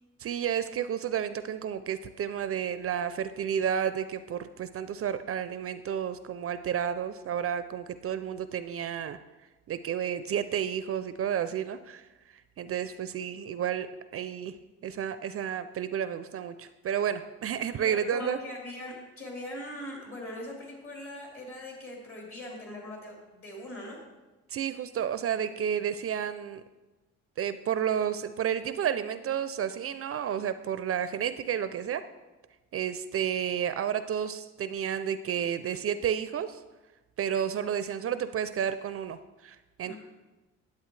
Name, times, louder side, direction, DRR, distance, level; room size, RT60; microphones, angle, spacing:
voice 1, 0.2-9.2 9.7-12.1 12.6-13.9 14.1-14.6 14.8-18.4 24.5-26.6 27.4-32.0 32.7-36.6 37.2-39.9, right 9 dB, 50° right, 12 dB, 0.4 m, -31 dB
voice 2, 17.8-24.0 39.8-39.9, left 1 dB, 45° left, -2 dB, 3.4 m, -41 dB
10.0 x 8.2 x 3.2 m, 1.1 s
cardioid pair, 90°, 30 cm